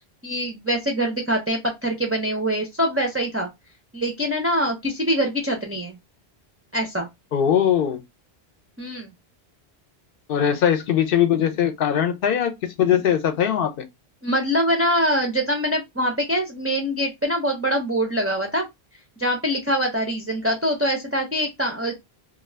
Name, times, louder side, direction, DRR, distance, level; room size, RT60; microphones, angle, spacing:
voice 1, 0.2-3.5 3.9-6.0 6.7-7.1 8.8-9.1 14.2-18.7 19.2-22.0, equal, 25° right, 0.3 m, -24 dB
voice 2, 7.3-8.0 10.3-13.8, left 9 dB, 65° left, 0.8 m, -21 dB
2.4 x 2.3 x 3.2 m
omnidirectional pair, 1.0 m